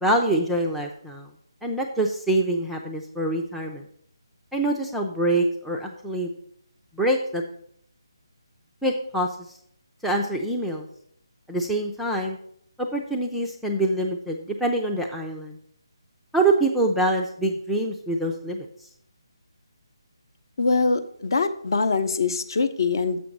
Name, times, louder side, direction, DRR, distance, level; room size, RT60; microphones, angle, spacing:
voice 1, 0.0-1.3 1.6-3.8 4.5-6.3 7.0-7.4 8.8-9.3 10.0-10.9 11.5-12.4 12.9-15.6 16.3-18.7, right 1 dB, ahead, -1 dB, 0.3 m, -25 dB
voice 2, 20.6-23.2, left 4 dB, 55° left, 10 dB, 0.7 m, -23 dB
7.1 x 5.1 x 5.9 m, 0.67 s
hypercardioid pair, 165°, 3 cm